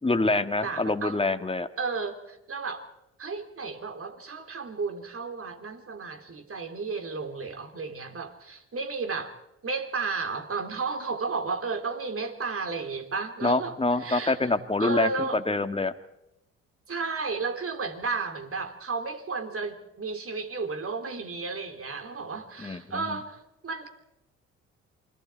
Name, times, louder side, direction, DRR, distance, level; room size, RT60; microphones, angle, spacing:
voice 1, 0.0-1.7 13.4-15.9 22.6-23.2, left 3 dB, 15° left, 8 dB, 1.8 m, -26 dB
voice 2, 0.6-1.2 1.8-2.8 3.2-9.3 9.6-15.4 16.9-23.9, right 4 dB, 40° right, 6 dB, 3.5 m, -33 dB
28.0 x 22.5 x 4.6 m, 0.85 s
supercardioid pair, 55°, 33 cm